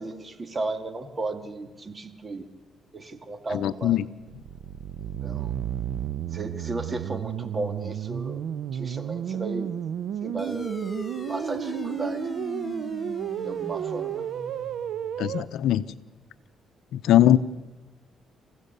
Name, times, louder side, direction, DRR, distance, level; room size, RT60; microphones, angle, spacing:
voice 1, 0.0-2.5 2.9-4.1 5.2-5.5 6.3-8.5 8.7-9.8 10.2-10.7 11.3-12.3 13.4-14.2, right 2 dB, 30° right, 7 dB, 2.2 m, -34 dB
voice 2, 3.6-4.0 15.2-15.8 16.9-17.4, left 12 dB, 80° left, 10 dB, 0.7 m, -20 dB
sound 1, 4.2-15.4, right 9 dB, 75° right, 0.8 m, -32 dB
sound 2, 10.4-15.3, left 1 dB, 20° left, 3.6 m, -38 dB
28.0 x 15.5 x 6.8 m, 1.2 s
cardioid pair, 90°, 0 cm